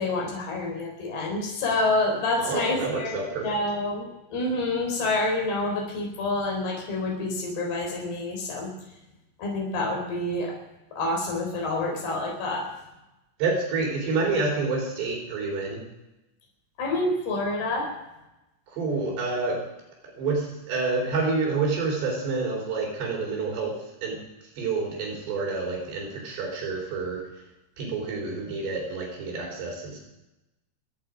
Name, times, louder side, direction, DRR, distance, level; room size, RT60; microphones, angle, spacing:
voice 1, 0.0-8.7 9.4-10.5 10.9-12.7 16.8-17.9, left 2 dB, 70° left, 0 dB, 6.0 m, -28 dB
voice 2, 2.4-3.5 13.4-15.8 18.7-19.6 20.2-24.2 24.6-27.3 27.8-30.0, right 3 dB, 80° right, -1 dB, 6.0 m, -28 dB
28.0 x 9.4 x 5.1 m, 0.97 s
omnidirectional pair, 4.8 m